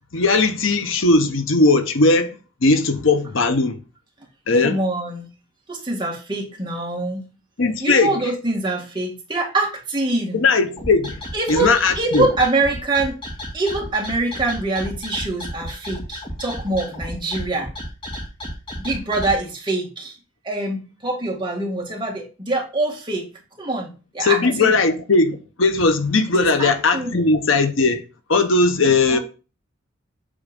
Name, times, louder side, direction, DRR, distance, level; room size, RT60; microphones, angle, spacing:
voice 1, 0.1-2.4 2.6-3.8 4.5-4.8 7.6-8.2 10.3-11.2 11.5-12.3 24.2-28.0 28.3-29.2, left 3 dB, 70° left, 0.9 m, -18 dB
voice 2, 4.6-5.3 5.7-7.2 7.8-10.4 11.3-13.2 13.5-17.7 18.8-20.2 20.4-23.3 23.6-24.8 26.4-27.3 29.1-29.2, right 2 dB, 20° right, 2.0 m, -24 dB
sound 1, 10.8-19.4, equal, 25° left, 2.3 m, -32 dB
8.6 x 3.7 x 5.2 m
head